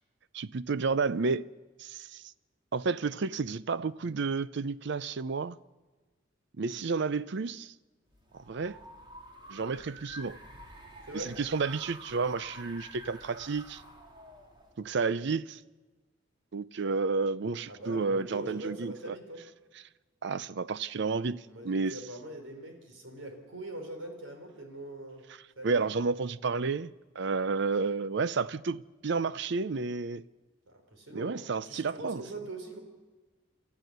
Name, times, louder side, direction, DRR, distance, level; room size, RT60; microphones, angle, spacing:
voice 1, 0.3-1.5 1.8-2.3 2.7-5.6 6.6-7.7 8.3-8.8 9.5-10.4 11.1-13.8 14.8-15.6 16.5-19.2 20.2-22.0 25.6-26.9 27.2-30.2 31.1-32.2, right 4 dB, 60° right, 0.5 m, -31 dB
sound 1, 8.1-15.3, equal, 25° right, 2.7 m, -49 dB
voice 2, 17.7-19.4 21.5-25.2 25.6-25.9 30.7-32.8, right 1 dB, 85° right, 4.3 m, -42 dB
29.0 x 13.5 x 6.7 m
head